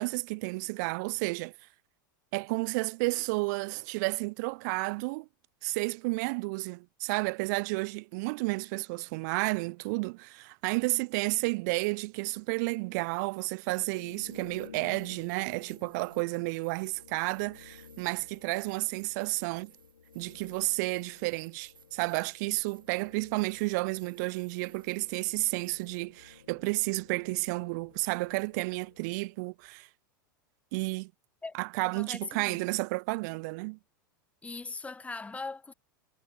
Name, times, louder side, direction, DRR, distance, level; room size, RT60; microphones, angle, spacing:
voice 1, 0.0-1.5 2.3-5.3 5.6-19.7 20.1-29.9 30.7-31.1 31.5-33.8, right 27 dB, 55° right, 0.7 m, -31 dB
sound 1, 12.9-26.1, right 7 dB, 85° right, 6.4 m, -60 dB
sound 2, 13.7-29.5, left 6 dB, 90° left, 2.2 m, -55 dB
voice 2, 31.8-32.6 34.4-35.7, left 3 dB, 10° left, 1.3 m, -40 dB
hypercardioid pair, 95°, 11 cm